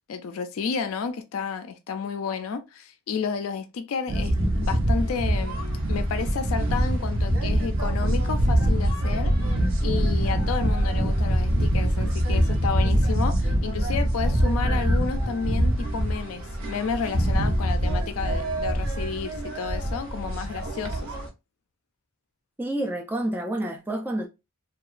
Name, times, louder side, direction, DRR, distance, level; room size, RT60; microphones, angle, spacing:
voice 1, 0.1-5.6 5.9-9.3 9.8-21.1, left 5 dB, 80° left, 0.4 m, -31 dB
sound 1, 4.1-21.3, right 1 dB, 65° right, 0.7 m, -24 dB
voice 2, 22.6-24.3, right 1 dB, 10° right, 0.3 m, -28 dB
2.8 x 2.2 x 2.4 m
head